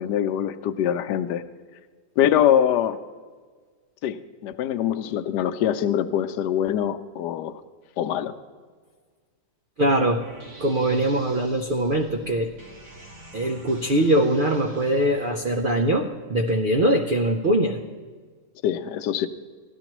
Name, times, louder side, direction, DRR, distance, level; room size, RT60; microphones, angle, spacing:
voice 1, 0.0-1.4 2.2-3.0 4.0-7.5 8.0-8.3 18.6-19.3, left 10 dB, 80° left, 8 dB, 1.2 m, -23 dB
voice 2, 9.8-10.2 10.6-12.5 13.3-17.8, right 1 dB, 90° right, 4 dB, 0.4 m, -22 dB
sound 1, 10.2-16.0, right 2 dB, 40° right, 1.8 m, -46 dB
16.0 x 11.5 x 3.0 m, 1.5 s
omnidirectional pair, 1.8 m